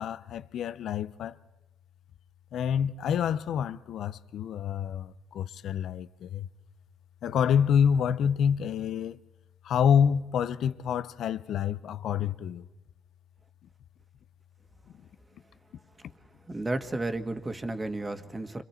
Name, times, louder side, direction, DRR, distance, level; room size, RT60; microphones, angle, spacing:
voice 1, 0.0-1.4 2.5-6.5 7.2-9.2 9.6-12.7, left 8 dB, 70° left, 0.8 m, -27 dB
voice 2, 16.5-18.6, right 2 dB, 20° right, 1.7 m, -32 dB
29.5 x 26.0 x 4.5 m
cardioid pair, 90°, 0 cm